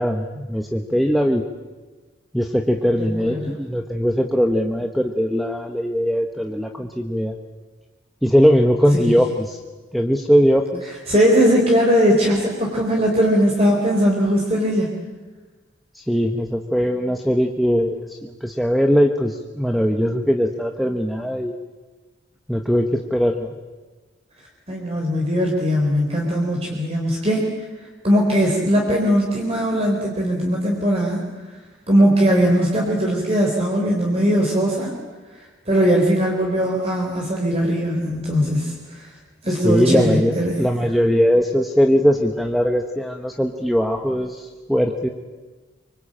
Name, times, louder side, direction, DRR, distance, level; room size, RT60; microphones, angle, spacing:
voice 1, 0.0-1.4 2.3-7.4 8.2-9.6 9.9-10.9 15.9-21.5 22.5-23.5 39.6-40.3 40.6-45.1, equal, ahead, 4 dB, 1.2 m, -20 dB
voice 2, 2.9-3.5 8.9-9.1 11.1-14.9 24.7-27.5 28.0-31.2 31.9-34.9 35.7-39.1 39.4-40.7, equal, 30° right, -1 dB, 4.0 m, -19 dB
25.5 x 24.0 x 8.9 m, 1.3 s
head